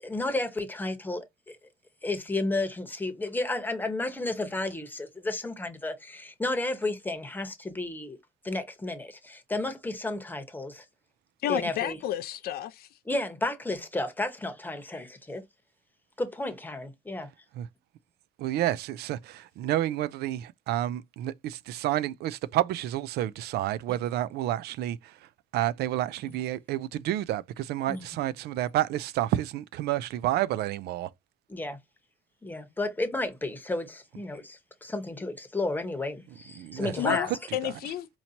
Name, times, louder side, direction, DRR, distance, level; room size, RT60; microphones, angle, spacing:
voice 1, 0.0-1.6 2.0-8.2 8.4-10.8 11.5-12.0 13.1-15.4 16.2-17.3 23.9-24.0 26.3-26.4 27.9-28.0 31.5-31.8 32.4-37.3, left 2 dB, 10° left, 1.0 m, -32 dB
voice 2, 11.4-12.9 37.0-38.1, left 12 dB, 65° left, 0.5 m, -31 dB
voice 3, 18.4-25.0 25.5-31.1 36.6-37.2, right 13 dB, 75° right, 0.4 m, -30 dB
4.4 x 2.7 x 2.8 m
cardioid pair, 110°, 17 cm